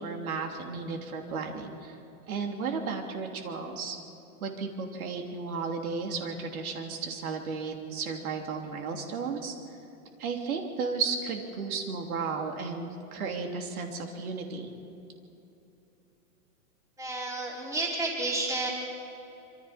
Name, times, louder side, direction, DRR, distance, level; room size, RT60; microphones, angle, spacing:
voice 1, 0.0-2.0 2.3-4.0 4.4-9.5 10.2-14.7, right 5 dB, 70° right, 3 dB, 3.0 m, -34 dB
voice 2, 17.0-18.7, right 2 dB, 5° right, -2 dB, 2.9 m, -31 dB
25.5 x 25.5 x 4.3 m, 3.0 s
hypercardioid pair, 155°, 45 cm